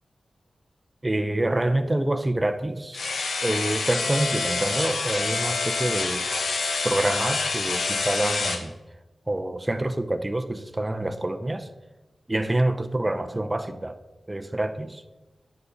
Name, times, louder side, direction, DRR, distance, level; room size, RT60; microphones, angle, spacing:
voice 1, 1.0-3.0 3.4-6.3 6.8-8.7 9.3-11.7 12.3-14.0 14.3-15.0, right 1 dB, 15° right, 9 dB, 0.7 m, -26 dB
sound 1, 2.9-8.6, left 4 dB, 85° left, 1.3 m, -27 dB
14.0 x 11.0 x 4.0 m, 1.1 s
wide cardioid pair, 130°, 0 cm